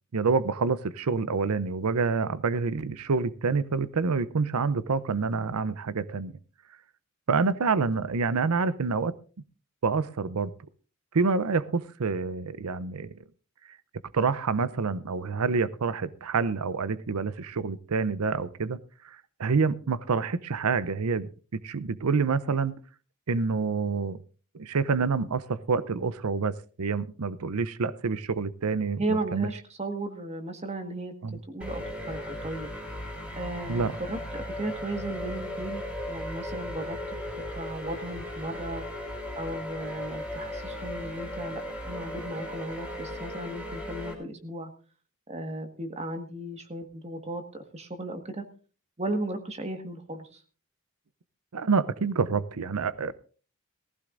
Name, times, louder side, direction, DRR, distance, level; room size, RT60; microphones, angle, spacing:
voice 1, 0.1-6.3 7.3-9.1 9.8-10.5 11.1-13.1 14.1-18.8 19.0-22.7 23.3-24.2 24.6-29.5 31.2-31.4 33.7-34.0 51.5-53.1, right 4 dB, 80° right, 16 dB, 0.6 m, -27 dB
voice 2, 29.0-31.1 31.5-32.7 33.3-37.0 37.6-38.8 39.4-44.7 45.3-48.4 49.0-50.4, right 1 dB, 30° right, 7 dB, 1.6 m, -35 dB
sound 1, 31.6-44.1, left 1 dB, 5° right, 3.3 m, -37 dB
18.5 x 15.0 x 2.6 m, 0.37 s
head